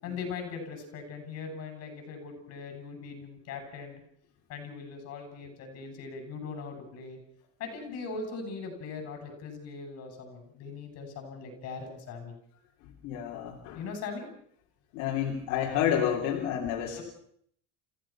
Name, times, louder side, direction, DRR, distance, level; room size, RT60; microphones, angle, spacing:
voice 1, 0.0-4.0 4.5-7.2 7.6-12.3 13.7-14.3 17.0-17.1, left 5 dB, 55° left, 5 dB, 8.0 m, -40 dB
voice 2, 13.0-13.8 14.9-17.0, left 9 dB, 85° left, 0 dB, 3.3 m, -29 dB
29.0 x 16.0 x 6.1 m, 0.64 s
cardioid pair, 170°, 29 cm